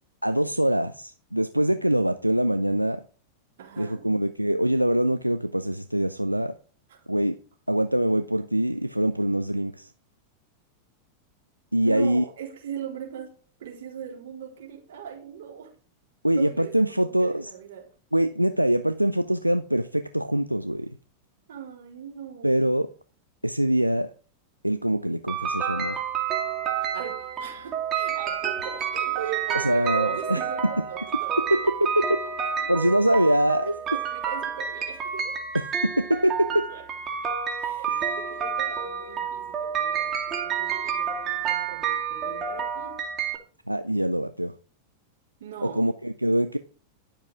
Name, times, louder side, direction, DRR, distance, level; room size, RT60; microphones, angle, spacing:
voice 1, 0.2-3.0 3.8-6.5 7.1-7.4 7.7-9.9 11.7-12.2 16.2-17.5 18.1-21.0 22.4-22.9 23.4-24.1 24.6-26.0 29.5-30.4 31.5-32.2 32.7-33.8 35.5-36.7 37.9-38.1 43.7-44.5 45.6-46.6, right 1 dB, 90° right, 0.5 m, -24 dB
voice 2, 3.6-4.1 7.0-7.1 11.8-13.3 13.6-15.7 16.4-17.9 21.5-22.8 26.9-31.5 31.9-32.0 32.7-33.2 33.9-35.4 36.5-36.8 37.6-43.0 45.4-45.9, right 9 dB, 60° right, 4.0 m, -39 dB
sound 1, 25.3-43.4, right 7 dB, 30° right, 2.6 m, -29 dB
11.5 x 7.3 x 4.9 m
figure-of-eight pair, 90°, 0 cm